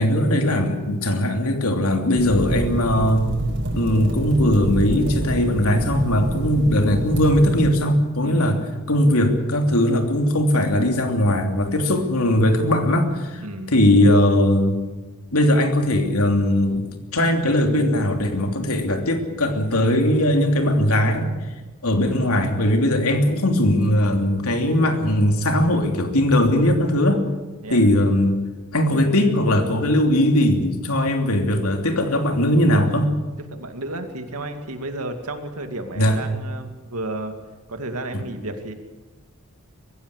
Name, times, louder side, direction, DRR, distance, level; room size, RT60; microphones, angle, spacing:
voice 1, 0.0-3.3 3.7-8.6 8.9-13.4 13.7-14.8 15.3-16.9 17.1-21.3 21.8-27.2 27.7-28.4 28.7-33.1 36.0-36.2, left 1 dB, 75° left, 4 dB, 3.0 m, -19 dB
sound 1, 2.1-7.7, equal, 55° right, 4.9 m, -26 dB
voice 2, 13.4-13.7 27.6-27.8 28.9-29.2 33.5-37.4 37.7-38.7, right 2 dB, 80° right, 6 dB, 2.4 m, -32 dB
23.0 x 16.0 x 8.3 m, 1.2 s
head